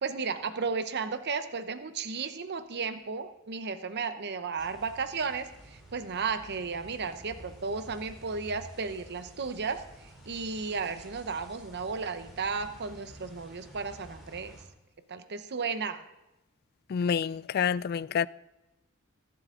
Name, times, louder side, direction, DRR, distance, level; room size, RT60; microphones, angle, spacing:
voice 1, 0.0-14.6 15.1-16.0, right 5 dB, 50° right, 0.8 m, -34 dB
sound 1, 4.6-14.7, right 1 dB, ahead, 3.5 m, -51 dB
voice 2, 16.9-18.3, left 7 dB, 45° left, 0.3 m, -28 dB
23.5 x 7.9 x 3.8 m
head